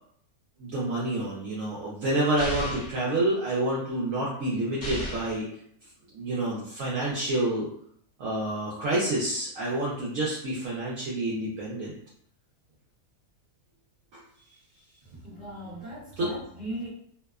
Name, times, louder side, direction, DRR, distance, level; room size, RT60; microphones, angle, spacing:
voice 1, 0.6-5.5 6.1-7.7 8.2-11.9 16.2-16.3, right 1 dB, 65° right, -6 dB, 0.9 m, -28 dB
sound 1, 2.4-3.0 4.8-5.4, right 1 dB, 35° left, 1.1 m, -34 dB
voice 2, 15.2-16.9, right 1 dB, 45° right, -11 dB, 0.6 m, -38 dB
2.7 x 2.1 x 2.3 m, 0.67 s
omnidirectional pair, 1.7 m